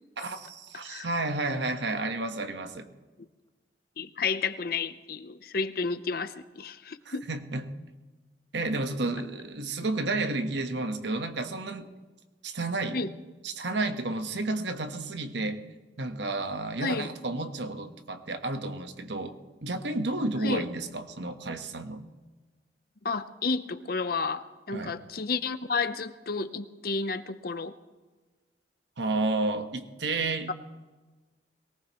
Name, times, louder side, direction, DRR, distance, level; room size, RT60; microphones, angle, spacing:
voice 1, 0.2-2.9 7.0-7.6 8.5-11.9 12.4-13.0 13.4-15.6 16.0-19.4 19.6-22.1 24.7-24.9 29.0-30.5, right 2 dB, 75° right, 7 dB, 1.2 m, -31 dB
voice 2, 4.0-7.3 12.9-13.1 16.8-17.1 20.4-20.6 23.0-27.8 30.5-30.6, left 4 dB, 55° left, 12 dB, 0.7 m, -31 dB
23.0 x 18.5 x 3.1 m, 1.3 s
head